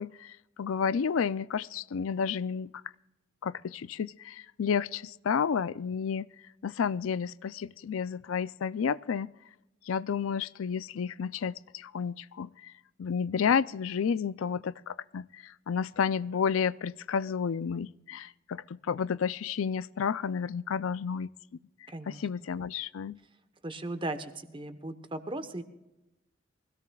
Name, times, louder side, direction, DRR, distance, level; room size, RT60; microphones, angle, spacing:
voice 1, 0.0-2.7 3.4-6.3 6.6-9.3 9.9-12.7 13.0-21.3 22.1-23.2, left 6 dB, 85° left, 0.4 m, -31 dB
voice 2, 21.9-22.2 23.6-25.6, right 2 dB, 25° right, 1.0 m, -37 dB
23.5 x 16.5 x 2.3 m
head